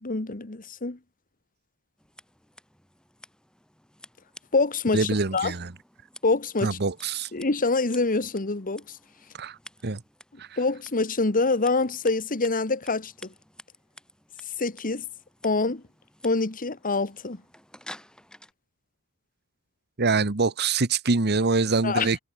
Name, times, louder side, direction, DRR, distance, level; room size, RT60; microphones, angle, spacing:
voice 1, 0.0-1.0 4.5-5.5 6.2-6.8 7.3-9.0 10.6-13.3 14.6-15.0 15.4-15.8 16.2-17.4 21.8-22.1, left 3 dB, 40° left, 1.4 m, -25 dB
Scissors, 2.0-18.5, left 1 dB, 5° left, 4.8 m, -52 dB
voice 2, 4.9-5.7 6.6-7.3 9.4-9.6 9.8-10.0 10.4-10.5 20.0-22.2, right 4 dB, 50° right, 1.2 m, -24 dB
head